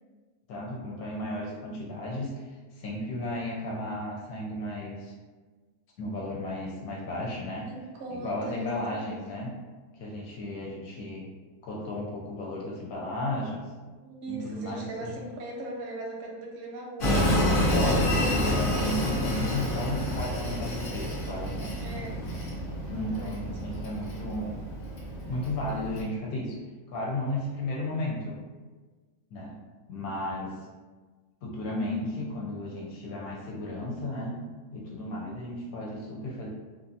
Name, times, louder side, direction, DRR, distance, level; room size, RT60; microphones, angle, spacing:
voice 1, 0.5-5.1 6.0-7.7 8.1-9.6 9.9-11.3 11.6-13.7 14.3-15.2 17.7-21.8 22.9-24.6 25.3-26.6 26.9-28.3 29.3-29.5 29.9-30.6 31.4-34.4 34.7-36.5, left 1 dB, 75° left, -3 dB, 1.0 m, -34 dB
voice 2, 7.6-9.2 14.0-17.7 21.8-22.2 22.9-23.5, right 2 dB, 65° right, -2 dB, 0.7 m, -40 dB
Train, 17.0-26.0, left 1 dB, 55° left, 0.6 m, -28 dB
2.6 x 2.4 x 2.6 m, 1.3 s
omnidirectional pair, 1.6 m